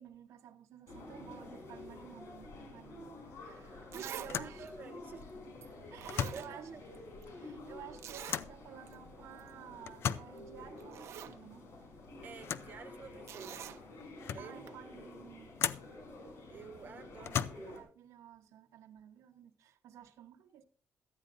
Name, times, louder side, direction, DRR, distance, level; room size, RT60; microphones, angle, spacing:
voice 1, 0.0-4.7 5.9-6.7 7.4-11.7 14.4-15.5 17.2-17.3 17.7-20.6, right 9 dB, 90° right, 1.1 m, -53 dB
sound 1, 0.9-17.8, left 2 dB, 75° left, 5.2 m, -50 dB
sound 2, 3.0-3.2 3.5-3.6 4.2-4.6 6.0-6.5 8.3-8.6 9.8-10.4 12.4-12.8 13.5-13.6 14.0-14.6 15.6-16.0 17.2-17.8, left 9 dB, 55° left, 0.6 m, -37 dB
Zipper (clothing), 3.4-3.5 3.9-4.3 4.7-4.8 5.6-5.7 6.0-7.0 7.2-7.3 8.0-8.4 8.9-9.0 9.3-9.5 10.4-10.5 10.8-11.4 13.3-13.8 14.7-14.8, right 10 dB, 70° right, 0.9 m, -46 dB
voice 2, 3.7-5.2 5.9-6.8 12.2-13.7 14.3-14.7 16.5-17.8, right 6 dB, 40° right, 1.4 m, -50 dB
17.5 x 13.0 x 2.7 m
cardioid pair, 175°, 5 cm